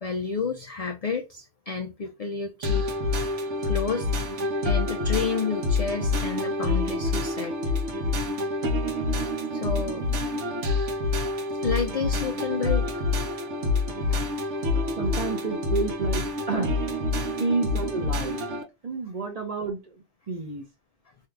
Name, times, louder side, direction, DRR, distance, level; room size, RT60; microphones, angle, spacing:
voice 1, 0.0-2.9 3.6-4.1 4.6-7.5 9.5-10.1 11.6-13.0 14.1-14.6, left 5 dB, 65° left, 0.3 m, -30 dB
sound 1, 2.6-18.6, left 2 dB, 85° right, 1.1 m, -27 dB
voice 2, 14.7-16.8 17.4-18.4 18.8-20.6, right 4 dB, 40° right, 0.7 m, -30 dB
2.8 x 2.4 x 3.2 m
omnidirectional pair, 1.2 m